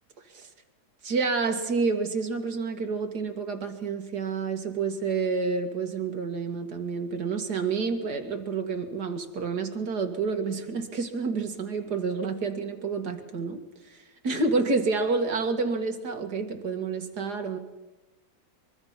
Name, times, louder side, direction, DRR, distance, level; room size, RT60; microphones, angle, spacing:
voice 1, 1.0-14.0 14.2-17.6, right 4 dB, 75° right, 2.5 m, -29 dB
24.0 x 23.0 x 5.7 m
omnidirectional pair, 1.7 m